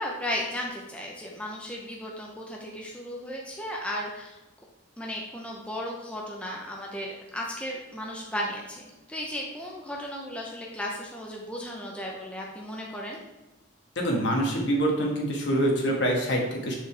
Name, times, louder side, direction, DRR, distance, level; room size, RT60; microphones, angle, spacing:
voice 1, 0.0-4.4 5.0-13.2, equal, 5° left, -2 dB, 0.7 m, -35 dB
voice 2, 13.9-16.8, right 1 dB, 55° left, -1 dB, 1.6 m, -25 dB
7.0 x 6.4 x 3.4 m, 1.1 s
head